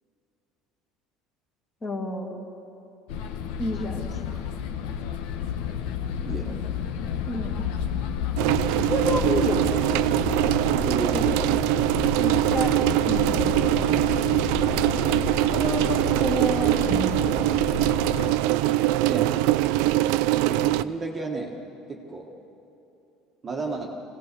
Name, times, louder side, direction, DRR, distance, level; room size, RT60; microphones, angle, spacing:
voice 1, 1.8-2.4 3.6-4.4 7.3-7.7 8.7-9.8 12.2-12.7 13.0-13.7 15.4-17.4, left 1 dB, 20° left, 1 dB, 2.0 m, -30 dB
sound 1, 3.1-18.4, left 8 dB, 80° left, 1.2 m, -31 dB
voice 2, 6.3-6.6 10.7-11.4 14.9-15.1 19.1-19.3 20.4-21.5 21.9-22.3 23.4-23.9, right 3 dB, 20° right, 0 dB, 1.4 m, -32 dB
sound 2, 8.4-20.8, right 15 dB, 80° right, 0.5 m, -23 dB
24.5 x 17.0 x 6.9 m, 2.9 s
cardioid pair, 170°, 0 cm